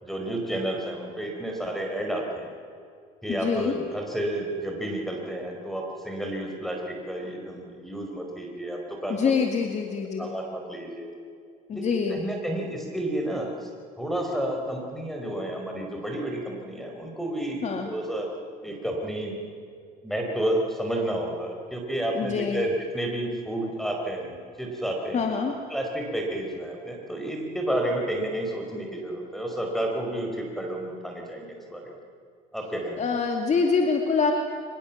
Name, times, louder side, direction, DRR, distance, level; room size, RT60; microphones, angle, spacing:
voice 1, 0.0-2.5 3.2-9.3 10.2-11.1 11.7-13.7 14.0-18.3 18.6-19.3 20.0-25.3 25.7-31.9 32.5-33.0, right 1 dB, ahead, 1 dB, 4.8 m, -31 dB
voice 2, 3.3-3.7 9.1-10.3 11.7-12.2 17.6-17.9 22.1-22.7 25.1-25.5 33.0-34.3, left 5 dB, 45° left, 3 dB, 2.2 m, -25 dB
24.0 x 21.5 x 7.4 m, 2.3 s
cardioid pair, 110°, 17 cm